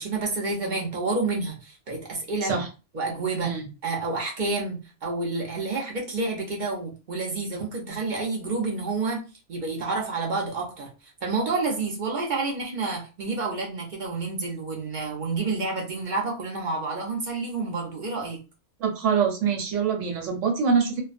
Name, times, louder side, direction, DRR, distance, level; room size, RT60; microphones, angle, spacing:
voice 1, 0.0-2.6 2.9-3.6 3.8-9.2 9.5-10.9 11.2-18.4, right 3 dB, 45° right, -2 dB, 0.8 m, -29 dB
voice 2, 18.8-21.0, right 6 dB, 90° right, 2 dB, 1.1 m, -24 dB
2.5 x 2.2 x 2.4 m, 0.31 s
omnidirectional pair, 1.2 m